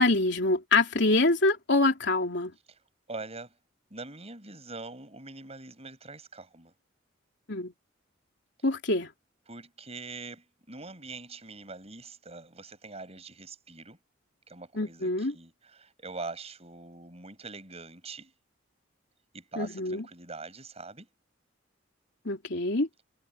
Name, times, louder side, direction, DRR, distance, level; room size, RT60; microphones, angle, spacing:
voice 1, 0.0-2.5 7.5-7.7 8.6-9.1 14.7-15.3 19.5-20.0 22.2-22.9, left 2 dB, 65° left, 3.4 m, -25 dB
voice 2, 3.1-3.5 3.9-6.7 9.5-14.0 14.5-18.3 19.3-21.1, right 3 dB, 35° right, 8.0 m, -43 dB
head